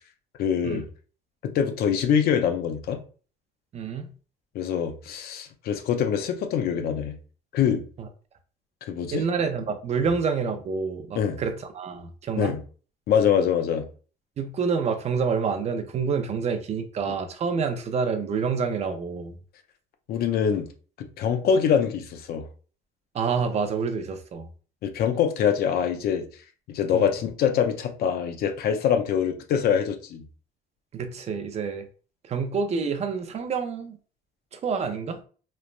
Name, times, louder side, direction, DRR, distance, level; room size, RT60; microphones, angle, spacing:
voice 1, 0.4-0.8 1.4-3.0 4.5-7.2 7.5-7.8 8.9-9.2 11.2-11.4 12.4-12.6 13.1-13.8 20.1-20.7 21.0-22.5 24.8-26.2 26.7-30.2, left 8 dB, 65° left, 0.5 m, -24 dB
voice 2, 3.7-4.1 8.0-8.1 9.1-12.6 14.4-19.3 23.1-24.5 26.9-27.1 30.9-31.9 32.2-34.0 34.5-35.2, right 5 dB, 40° right, 0.5 m, -28 dB
3.2 x 2.0 x 2.4 m
cardioid pair, 110°, 17 cm